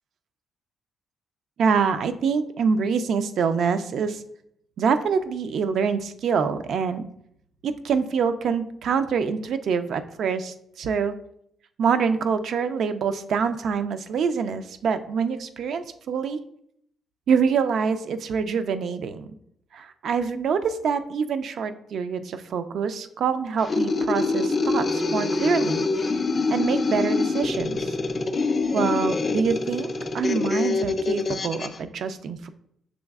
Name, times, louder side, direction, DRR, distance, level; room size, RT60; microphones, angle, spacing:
voice 1, 1.6-4.2 4.8-7.1 7.6-11.1 11.8-16.4 17.3-19.3 19.7-26.2 26.5-27.9 28.7-29.9 30.1-32.5, right 6 dB, 70° right, 10 dB, 0.3 m, -25 dB
sound 1, 23.6-31.8, left 3 dB, 40° left, 0.4 m, -25 dB
6.1 x 3.2 x 2.3 m, 0.71 s
supercardioid pair, 70°, 0 cm